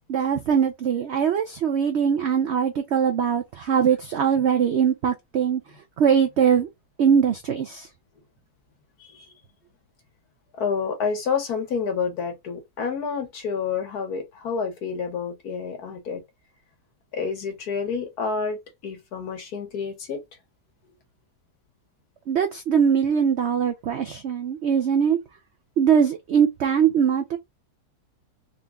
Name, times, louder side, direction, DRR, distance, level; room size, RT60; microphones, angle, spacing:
voice 1, 0.1-5.6 6.0-6.7 7.0-7.9 22.3-25.2 25.8-27.4, right 7 dB, 80° right, 0.6 m, -21 dB
voice 2, 9.0-9.3 10.6-16.2 17.1-18.6 18.8-20.2, left 5 dB, 65° left, 1.6 m, -29 dB
3.8 x 2.3 x 3.6 m
omnidirectional pair, 1.8 m